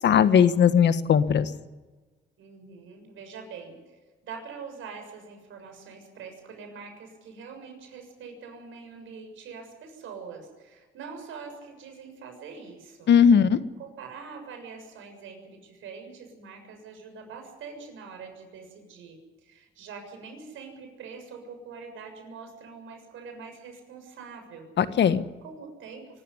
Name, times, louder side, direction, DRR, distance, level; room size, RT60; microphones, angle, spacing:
voice 1, 0.0-1.5 13.1-13.6 24.8-25.2, left 7 dB, 60° left, 12 dB, 1.4 m, -19 dB
voice 2, 2.4-13.1 13.8-25.1 25.4-26.2, right 5 dB, 80° right, 4 dB, 7.0 m, -44 dB
24.0 x 13.5 x 9.9 m, 1.3 s
cardioid pair, 90°, 20 cm